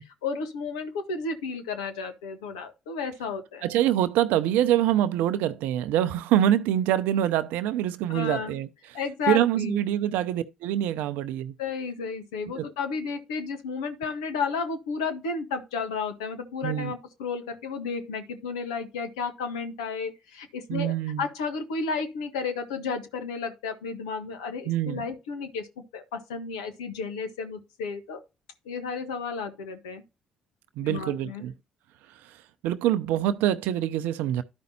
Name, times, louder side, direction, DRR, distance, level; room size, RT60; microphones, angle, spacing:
voice 1, 0.2-3.7 8.1-8.5 8.9-9.8 11.6-25.7 25.9-28.2 28.6-30.0 30.8-31.4, left 5 dB, 80° left, 1.3 m, -32 dB
voice 2, 3.6-8.7 9.3-11.5 12.5-12.7 16.6-16.9 20.7-21.2 24.7-25.1 30.8-31.5 32.6-34.4, right 12 dB, 70° right, 0.5 m, -25 dB
13.0 x 5.2 x 2.8 m
hypercardioid pair, 50°, 3 cm